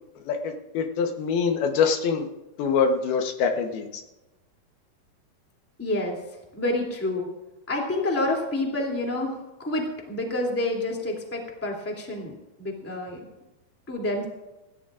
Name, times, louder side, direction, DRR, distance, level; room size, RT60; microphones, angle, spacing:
voice 1, 0.3-2.3 2.6-4.0, left 5 dB, 80° left, 5 dB, 3.0 m, -24 dB
voice 2, 5.8-6.2 6.5-7.3 7.7-13.2 13.9-14.2, left 1 dB, 5° left, -1 dB, 2.0 m, -28 dB
26.0 x 14.0 x 2.5 m, 1.0 s
omnidirectional pair, 4.5 m